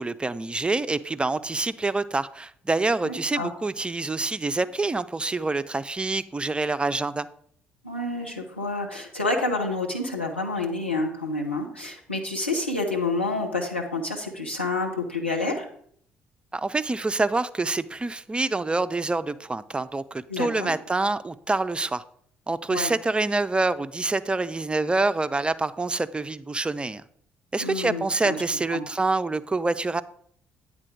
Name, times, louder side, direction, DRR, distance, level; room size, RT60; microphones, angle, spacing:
voice 1, 0.0-7.3 16.5-22.0 22.5-27.0 27.5-30.0, right 3 dB, 15° right, 0.4 m, -26 dB
voice 2, 3.0-3.5 7.8-15.7 20.3-20.7 22.7-22.9 27.6-28.4 28.7-28.8, left 2 dB, 85° left, 0.9 m, -28 dB
9.0 x 3.9 x 5.9 m
figure-of-eight pair, 45°, 6 cm